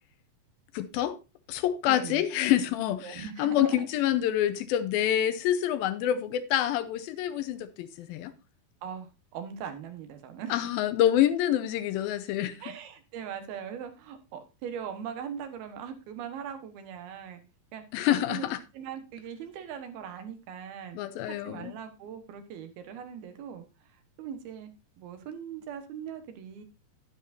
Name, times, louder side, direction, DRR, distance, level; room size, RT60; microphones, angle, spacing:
voice 1, 0.7-1.2 1.5-8.3 10.5-12.5 17.9-18.6 21.0-21.7, left 11 dB, 85° left, 2.5 m, -27 dB
voice 2, 1.9-2.2 3.0-3.9 8.8-10.7 12.6-17.4 17.7-17.8 18.3-21.0 21.2-24.7 25.0-26.6, right 8 dB, 90° right, 3.2 m, -40 dB
10.5 x 10.0 x 2.6 m
omnidirectional pair, 4.3 m